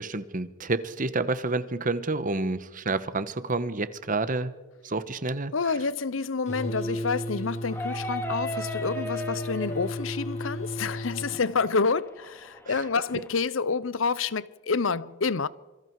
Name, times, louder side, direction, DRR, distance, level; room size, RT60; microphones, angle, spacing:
voice 1, 0.0-4.5 4.8-5.5 12.7-12.8, right 3 dB, 45° right, 1.2 m, -29 dB
voice 2, 5.5-15.5, left 4 dB, 85° left, 0.8 m, -28 dB
sound 1, 6.5-11.4, left 1 dB, 35° left, 4.1 m, -34 dB
sound 2, 7.6-13.3, equal, 10° left, 2.7 m, -38 dB
26.5 x 24.0 x 4.7 m
head